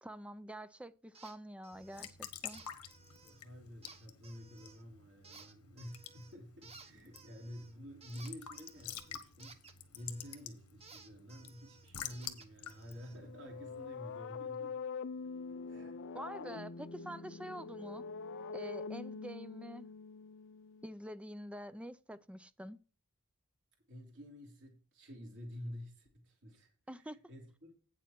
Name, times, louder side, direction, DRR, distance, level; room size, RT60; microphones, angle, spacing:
voice 1, 0.0-2.6 16.1-18.0 18.5-19.9 20.8-22.8 26.9-27.2, right 1 dB, 5° right, 0.4 m, -47 dB
sound 1, 1.1-1.4 1.6-2.1 2.5-3.4 3.8-4.8 5.2-6.4 6.6-10.4 10.8-13.2, right 4 dB, 30° right, 1.2 m, -58 dB
Raindrop / Drip / Trickle dribble, 1.7-14.2, left 9 dB, 85° left, 1.3 m, -50 dB
voice 2, 3.2-9.6 9.9-14.8 15.7-16.0 23.9-27.7, equal, 55° right, 3.1 m, -50 dB
sound 2, 13.1-20.9, left 5 dB, 55° left, 0.5 m, -44 dB
9.3 x 7.3 x 4.4 m
head